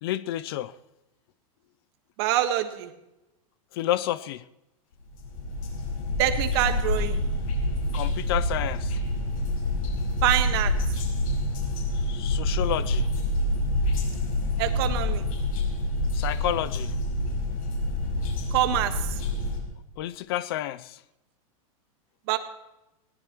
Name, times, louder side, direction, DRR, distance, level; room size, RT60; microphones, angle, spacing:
voice 1, 0.0-0.7 3.7-4.4 7.9-8.9 12.1-13.1 16.1-16.9 20.0-21.0, left 13 dB, 40° left, 17 dB, 0.5 m, -30 dB
voice 2, 2.2-2.9 6.2-7.2 10.2-10.7 14.6-15.2 18.5-19.2 22.3-22.4, right 13 dB, 45° right, 7 dB, 1.5 m, -25 dB
sound 1, 5.1-19.6, left 1 dB, 70° left, 5.7 m, -27 dB
21.0 x 18.0 x 3.1 m, 0.94 s
supercardioid pair, 165°, 18 cm